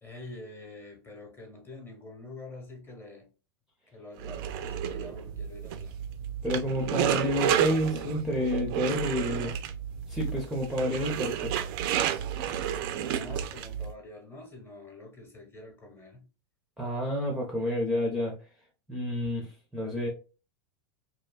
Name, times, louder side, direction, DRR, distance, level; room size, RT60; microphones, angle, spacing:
voice 1, 0.0-3.3 3.9-6.0 12.4-16.3 19.2-19.4, left 2 dB, 15° left, 1.0 m, -46 dB
sound 1, 4.2-13.9, right 9 dB, 55° right, 0.4 m, -31 dB
voice 2, 6.4-9.6 10.1-11.5 16.8-18.4 18.9-20.1, left 1 dB, ahead, 0.6 m, -29 dB
2.6 x 2.2 x 2.3 m
hypercardioid pair, 100°, 14 cm